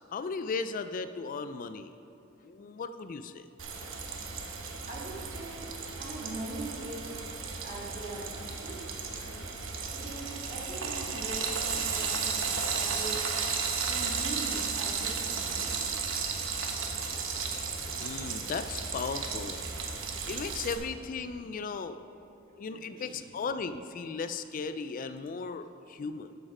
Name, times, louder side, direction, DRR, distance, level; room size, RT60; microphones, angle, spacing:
voice 1, 0.1-1.9 2.4-3.5 18.0-19.6 20.0-22.0 22.6-26.4, left 5 dB, 45° left, 10 dB, 0.3 m, -36 dB
Frying (food), 3.6-20.7, right 5 dB, 80° right, 1.0 m, -34 dB
voice 2, 4.9-5.6 6.0-7.3 7.6-13.3 13.8-15.8 22.7-23.2, right 2 dB, 45° right, -3 dB, 2.0 m, -42 dB
12.5 x 6.4 x 4.9 m, 2.8 s
head